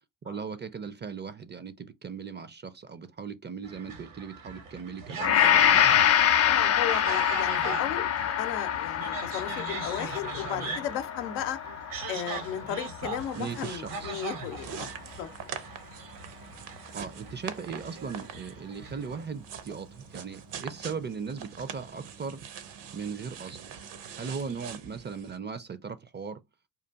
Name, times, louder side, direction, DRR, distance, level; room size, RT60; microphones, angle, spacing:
voice 1, 0.2-6.0 13.3-14.2 14.8-14.9 16.9-22.4 22.9-23.6 24.2-26.4, right 5 dB, 25° right, 0.4 m, -38 dB
sound 1, 3.6-19.2, right 5 dB, 70° right, 1.1 m, -41 dB
Gong, 5.2-13.5 14.0-14.1, left 9 dB, 30° left, 0.5 m, -26 dB
voice 2, 6.5-11.6 12.1-14.9 15.2-15.3, left 10 dB, 85° left, 0.6 m, -35 dB
sound 2, 13.0-25.4, right 7 dB, 55° right, 0.7 m, -44 dB
5.1 x 2.5 x 2.3 m
hypercardioid pair, 45°, 50 cm